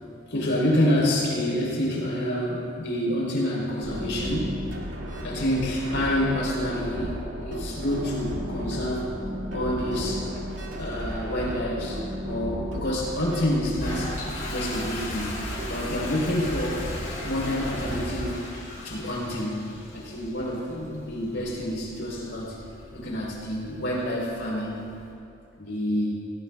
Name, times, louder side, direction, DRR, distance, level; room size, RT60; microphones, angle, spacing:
voice 1, 0.3-4.6 5.2-9.1 9.5-10.3 10.8-14.2 14.5-15.4 15.7-16.9 17.2-18.4 18.8-22.6 22.9-24.8 25.6-26.2, left 1 dB, 80° left, -3 dB, 3.7 m, -28 dB
sound 1, 3.8-18.3, equal, 90° right, 2.1 m, -34 dB
Toilet flush, 13.6-25.1, left 2 dB, 45° left, 3.3 m, -39 dB
17.0 x 17.0 x 2.3 m, 2.5 s
head